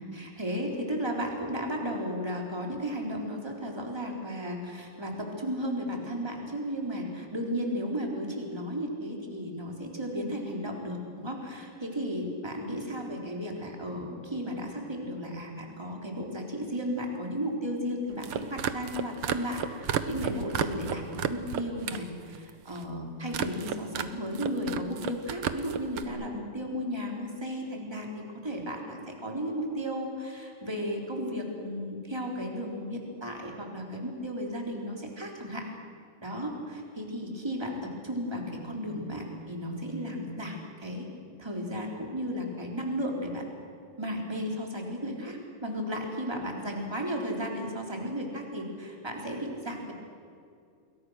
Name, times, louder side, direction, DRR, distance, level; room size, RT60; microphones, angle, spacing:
voice 1, 0.1-28.1 28.4-35.7 36.2-41.1 41.4-43.5 44.0-49.9, equal, 5° right, 1 dB, 3.5 m, -34 dB
sound 1, 18.1-22.1 22.3-22.8 23.3-24.1 24.3-26.1, right 9 dB, 90° right, 1.2 m, -32 dB
28.5 x 22.0 x 6.5 m, 2.3 s
omnidirectional pair, 4.0 m